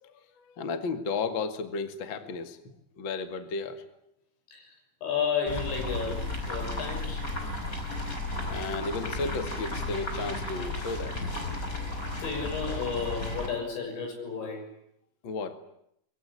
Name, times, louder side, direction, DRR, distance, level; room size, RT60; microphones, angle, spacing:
voice 1, 0.6-2.6 3.0-3.8 7.8-7.9 8.5-11.3 15.2-15.6, left 4 dB, 40° left, 8 dB, 1.8 m, -33 dB
voice 2, 5.0-7.2 12.2-14.7, left 6 dB, 80° left, 3 dB, 8.8 m, -32 dB
sound 1, 5.5-13.5, left 2 dB, 20° left, 5.3 m, -34 dB
24.5 x 23.5 x 9.9 m, 0.76 s
omnidirectional pair, 5.2 m